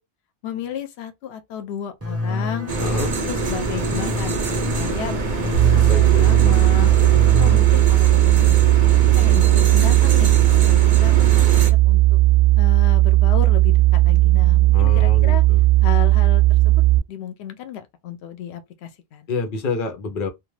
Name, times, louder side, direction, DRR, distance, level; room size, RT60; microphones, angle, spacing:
voice 1, 0.4-2.7 3.3-4.4 4.7-6.9 7.4-8.6 9.2-10.3 10.6-12.2 12.6-15.4 15.8-19.3, left 9 dB, 90° left, 0.8 m, -33 dB
sound 1, 2.0-7.6, left 2 dB, 15° right, 0.6 m, -28 dB
sound 2, 2.7-11.7, right 4 dB, 55° right, 0.7 m, -25 dB
voice 2, 2.8-3.1 5.9-6.3 6.8-7.1 14.7-15.6 19.3-20.3, left 4 dB, 60° left, 0.8 m, -28 dB
sound 3, 5.5-17.0, right 18 dB, 85° right, 0.8 m, -15 dB
2.4 x 2.2 x 3.1 m
omnidirectional pair, 1.1 m